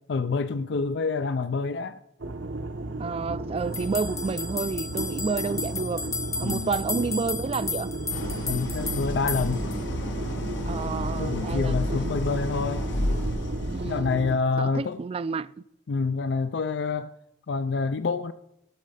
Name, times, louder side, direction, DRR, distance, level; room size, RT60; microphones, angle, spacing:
voice 1, 0.1-2.0 6.4-6.7 8.5-9.6 11.2-12.9 13.8-15.0 15.9-17.1 17.5-18.3, left 4 dB, 65° left, 0.4 m, -27 dB
sound 1, 2.2-14.4, right 2 dB, 85° right, 0.9 m, -34 dB
voice 2, 3.0-6.1 6.4-7.9 10.7-12.1 13.7-14.1 14.6-15.5, right 4 dB, 30° right, 0.3 m, -30 dB
sound 2, 3.7-9.8, left 4 dB, 15° left, 0.9 m, -34 dB
Idling, 8.1-14.2, left 1 dB, 85° left, 1.5 m, -31 dB
16.5 x 6.6 x 4.9 m
head